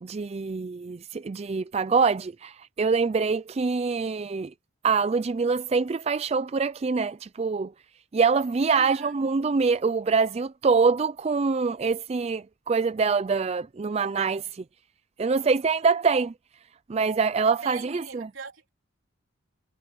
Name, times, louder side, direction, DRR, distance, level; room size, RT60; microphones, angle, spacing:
voice 1, 0.0-4.5 4.8-7.7 8.1-14.6 15.2-16.3 16.9-18.3, right 5 dB, 30° right, 0.4 m, -25 dB
voice 2, 8.7-9.1 17.4-18.7, right 4 dB, 80° right, 3.6 m, -42 dB
head